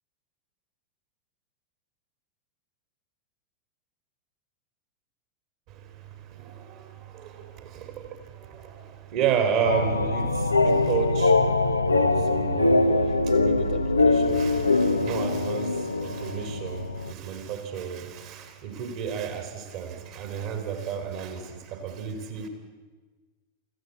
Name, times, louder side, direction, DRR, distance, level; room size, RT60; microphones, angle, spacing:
voice 1, 5.7-11.4 11.9-22.5, right 7 dB, 50° right, 6 dB, 3.2 m, -32 dB
sound 1, 9.6-17.1, left 3 dB, 80° left, 0.8 m, -23 dB
24.5 x 15.0 x 8.4 m, 1.4 s
figure-of-eight pair, 90°, 0 cm